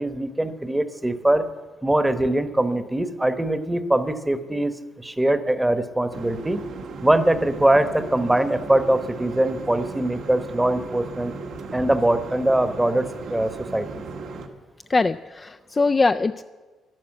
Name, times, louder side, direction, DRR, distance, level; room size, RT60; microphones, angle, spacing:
voice 1, 0.0-1.5 1.8-4.7 5.0-6.6 7.0-11.3 11.7-14.0, right 1 dB, 10° right, 11 dB, 1.0 m, -22 dB
sound 1, 6.1-14.5, right 4 dB, 80° right, 1.6 m, -36 dB
voice 2, 14.9-16.4, left 3 dB, 30° left, 8 dB, 0.3 m, -21 dB
12.0 x 11.5 x 7.7 m, 1.4 s
cardioid pair, 90°, 0 cm